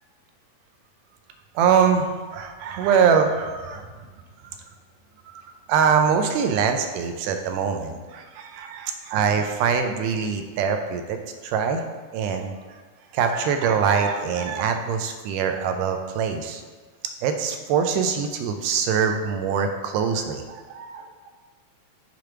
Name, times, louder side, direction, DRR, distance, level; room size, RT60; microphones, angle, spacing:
voice 1, 1.6-2.1 2.3-3.9 5.7-11.2 11.4-11.8 12.1-12.5 13.1-16.6 17.2-21.3, right 6 dB, 90° right, 6 dB, 2.2 m, -23 dB
6.7 x 3.1 x 5.8 m, 1.4 s
omnidirectional pair, 3.6 m